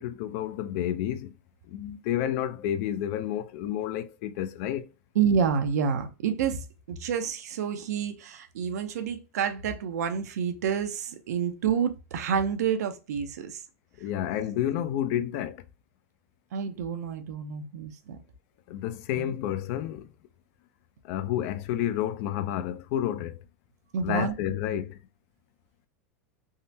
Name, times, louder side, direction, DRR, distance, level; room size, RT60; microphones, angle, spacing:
voice 1, 0.0-1.3 1.7-4.9 14.0-15.6 18.7-20.1 21.1-23.3 24.0-25.0, left 11 dB, 60° left, 0.4 m, -30 dB
voice 2, 5.1-13.6 16.5-18.2 19.2-19.3 23.9-24.3 24.7-24.8, right 7 dB, 90° right, 0.6 m, -29 dB
3.6 x 2.1 x 2.6 m
supercardioid pair, 135°, 9 cm